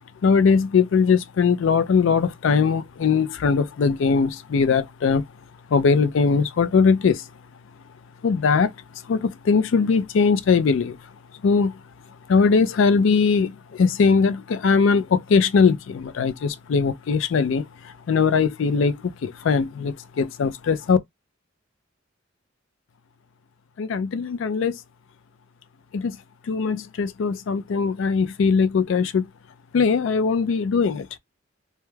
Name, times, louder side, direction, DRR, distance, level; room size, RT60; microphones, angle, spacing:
voice 1, 0.2-5.2 5.7-7.2 8.2-8.7 9.1-11.0 11.4-11.8 12.3-21.0 23.8-24.8 25.9-26.2 26.5-29.3 29.7-31.1, left 5 dB, 70° left, 0.4 m, -20 dB
2.2 x 2.1 x 3.1 m
head